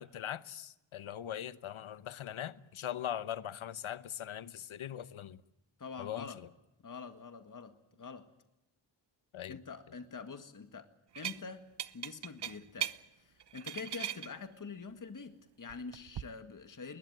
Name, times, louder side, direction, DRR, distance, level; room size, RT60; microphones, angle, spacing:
voice 1, 0.0-5.4 6.0-6.5 9.3-9.6, left 10 dB, 80° left, 1.0 m, -41 dB
voice 2, 5.8-6.4 6.8-8.3 9.5-10.9 11.2-11.6 11.9-17.0, left 5 dB, 40° left, 1.9 m, -46 dB
sound 1, 11.2-11.4 11.8-13.0 13.4-14.3 15.7-16.2, right 10 dB, 60° right, 0.8 m, -38 dB
21.0 x 20.0 x 9.3 m
wide cardioid pair, 90°, 48 cm